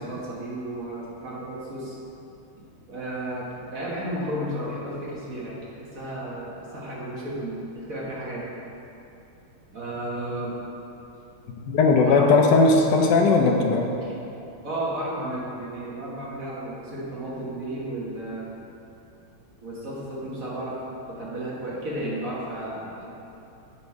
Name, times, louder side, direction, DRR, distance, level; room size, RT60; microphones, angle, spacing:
voice 1, 0.0-2.0 2.9-8.4 9.7-10.5 12.0-12.3 14.6-18.5 19.6-20.8 21.1-23.1, right 1 dB, 45° right, -6 dB, 1.5 m, -33 dB
voice 2, 11.7-13.9, left 3 dB, 70° left, 1 dB, 1.1 m, -18 dB
7.4 x 5.3 x 4.6 m, 2.9 s
omnidirectional pair, 2.4 m